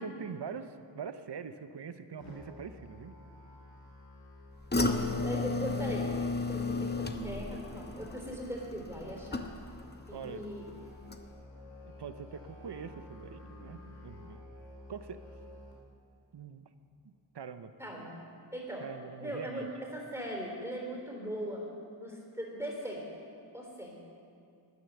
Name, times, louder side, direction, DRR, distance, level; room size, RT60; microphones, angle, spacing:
voice 1, 0.0-3.2 10.1-10.4 12.0-14.5 14.9-15.2 16.3-16.6 17.0-17.7 18.8-19.7, right 6 dB, 65° right, 11 dB, 0.7 m, -43 dB
Musical instrument, 2.2-15.7, left 1 dB, 75° left, 3.2 m, -51 dB
sound 1, 4.7-9.9 10.2-10.7 11.1-11.2, left 3 dB, 25° left, 0.8 m, -33 dB
voice 2, 5.2-6.1 6.5-9.4 10.1-10.7 17.8-18.2 18.5-18.9 19.2-23.1 23.5-24.0, right 1 dB, 5° right, -1 dB, 3.6 m, -39 dB
13.0 x 9.3 x 6.6 m, 2.4 s
wide cardioid pair, 60°, 45 cm